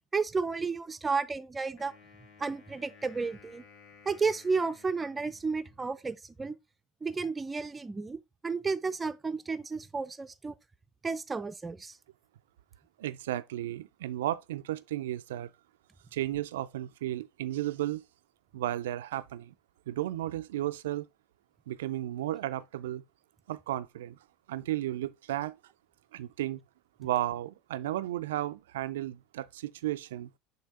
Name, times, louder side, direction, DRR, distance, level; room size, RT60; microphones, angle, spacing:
voice 1, 0.1-1.9 2.4-3.6 4.1-6.6 7.0-10.6 11.0-12.0, right 4 dB, 20° right, 0.5 m, -32 dB
Wind instrument woodwind instrument, 1.8-6.1, left 5 dB, 55° left, 2.0 m, -57 dB
voice 2, 13.0-15.5 16.1-18.0 18.5-19.5 19.9-21.1 21.7-23.0 23.5-24.2 24.5-25.6 26.1-26.6 27.0-30.3, right 14 dB, 80° right, 0.4 m, -34 dB
6.6 x 2.8 x 5.1 m
hypercardioid pair, 80°, 0 cm